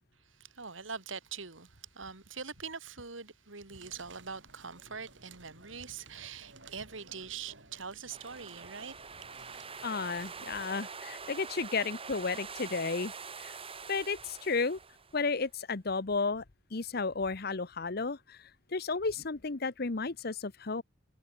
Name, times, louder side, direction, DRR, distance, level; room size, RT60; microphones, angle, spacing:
voice 1, 0.4-8.9, right 5 dB, 90° right, 2.9 m, -43 dB
sound 1, 3.7-10.5, right 3 dB, 75° right, 7.3 m, -57 dB
sound 2, 8.1-15.4, right 5 dB, 30° right, 4.0 m, -45 dB
voice 2, 9.8-13.1 13.4-13.5 13.9-14.8 15.1-16.4 16.7-18.4 18.7-20.8, left 4 dB, 55° left, 1.0 m, -33 dB
head